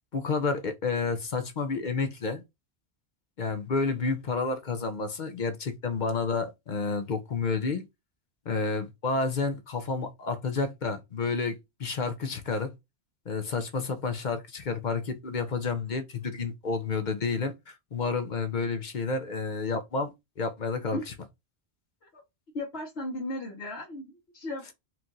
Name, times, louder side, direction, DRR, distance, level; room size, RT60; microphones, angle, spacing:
voice 1, 0.1-2.4 3.4-7.9 8.5-12.7 13.3-20.1 20.4-21.1, left 4 dB, 50° left, 0.7 m, -30 dB
voice 2, 22.5-24.1 24.3-24.7, left 1 dB, 75° left, 1.3 m, -35 dB
4.4 x 2.5 x 3.8 m
omnidirectional pair, 1.1 m